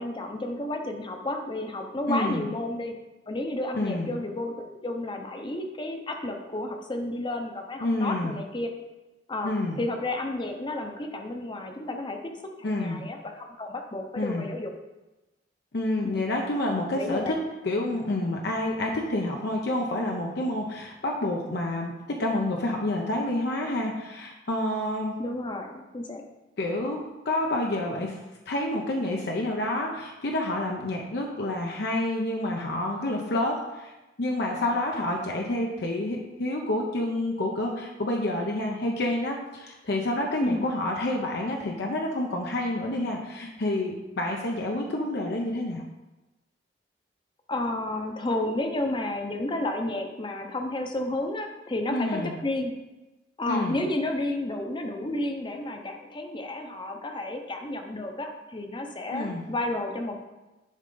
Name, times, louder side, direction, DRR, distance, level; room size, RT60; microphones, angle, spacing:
voice 1, 0.0-2.9 3.3-8.7 9.3-9.5 9.8-12.3 12.6-14.7 16.0-16.2 16.9-17.3 25.2-26.2 40.4-40.7 47.5-52.7 53.4-60.1, left 1 dB, 25° left, 4 dB, 0.7 m, -31 dB
voice 2, 2.1-2.4 3.8-4.1 7.8-8.3 9.4-9.8 12.6-13.0 14.2-14.5 15.7-17.4 17.6-25.2 26.6-28.2 28.5-33.9 34.2-45.8 51.9-52.4 53.5-53.8 59.1-59.4, left 1 dB, 65° left, 0 dB, 0.7 m, -28 dB
10.0 x 3.8 x 3.8 m, 1.1 s
head